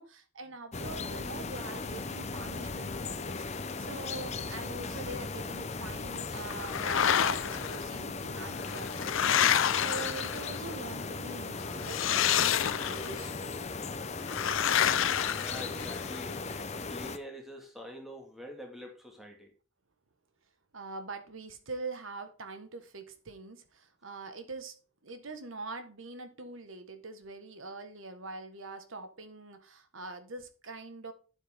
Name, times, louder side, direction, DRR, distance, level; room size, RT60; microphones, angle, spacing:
voice 1, 0.0-3.5 3.8-13.4 20.7-24.7 25.0-31.1, right 3 dB, 75° right, 1.5 m, -44 dB
sound 1, 0.7-17.2, left 4 dB, 30° left, 0.7 m, -37 dB
sound 2, 6.5-7.8 8.6-10.7 11.8-13.2 14.3-16.2, left 9 dB, 75° left, 0.6 m, -28 dB
voice 2, 15.4-16.4 16.9-19.5, equal, ahead, 2.2 m, -45 dB
9.0 x 8.0 x 3.7 m
head